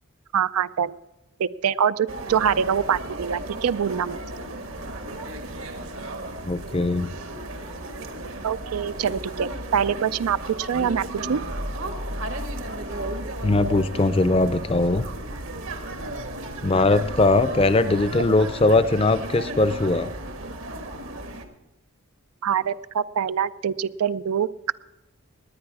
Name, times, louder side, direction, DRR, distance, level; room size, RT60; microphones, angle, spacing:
voice 1, 0.3-0.9 1.4-4.2 8.4-11.4 18.1-18.2 22.4-24.5, right 8 dB, 90° right, 16 dB, 0.4 m, -24 dB
sound 1, 2.1-21.4, right 1 dB, 70° right, 1.4 m, -34 dB
voice 2, 6.4-7.2 13.4-15.1 16.6-20.1, left 2 dB, 25° left, 14 dB, 0.5 m, -20 dB
19.0 x 9.6 x 4.8 m, 1.0 s
head